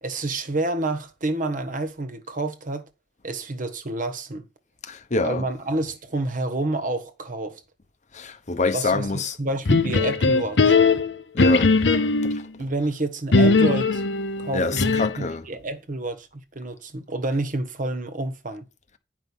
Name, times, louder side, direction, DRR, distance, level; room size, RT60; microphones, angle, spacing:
voice 1, 0.0-2.9 3.2-4.4 5.2-7.6 8.7-10.8 12.6-14.0 14.4-18.6, right 2 dB, 50° right, 1.3 m, -29 dB
voice 2, 4.8-5.5 8.1-9.4 11.3-11.7 12.2-12.5 14.5-15.4, left 3 dB, 45° left, 1.0 m, -26 dB
sound 1, 9.7-12.4 13.3-15.3, left 3 dB, 80° left, 0.8 m, -19 dB
9.7 x 5.5 x 5.5 m
head